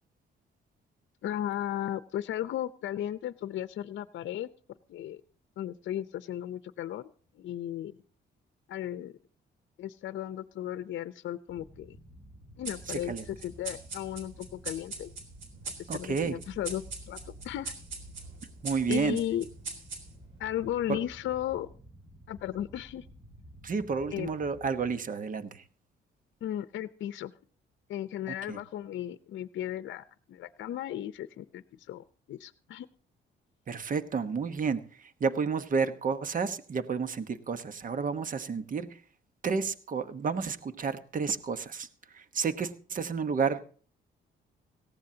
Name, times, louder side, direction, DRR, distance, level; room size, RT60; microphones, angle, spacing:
voice 1, 1.2-4.5 4.9-5.2 5.6-7.9 8.7-9.1 9.8-12.0 12.6-15.1 15.8-17.7 18.9-19.4 20.4-21.7 22.3-23.1 24.1-24.3 26.4-27.3 27.9-32.9, left 11 dB, 70° left, 13 dB, 0.7 m, -35 dB
sound 1, 11.5-25.0, equal, 20° right, 3.1 m, -53 dB
sound 2, 12.6-20.4, right 4 dB, 75° right, 3.7 m, -42 dB
voice 2, 12.9-13.2 15.9-16.4 18.6-19.2 20.9-21.0 23.6-25.6 28.3-28.6 33.7-39.0 39.4-43.6, right 5 dB, 45° right, 12 dB, 1.2 m, -31 dB
18.5 x 15.5 x 2.8 m, 0.43 s
cardioid pair, 90°, 20 cm